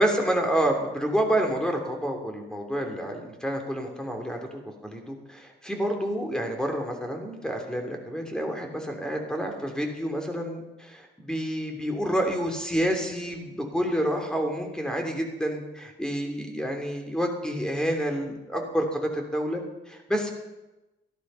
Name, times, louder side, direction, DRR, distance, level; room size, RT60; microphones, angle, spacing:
voice 1, 0.0-4.4 4.8-20.3, equal, 5° left, 3 dB, 3.1 m, -28 dB
14.5 x 11.5 x 5.7 m, 1.0 s
cardioid pair, 90°, 20 cm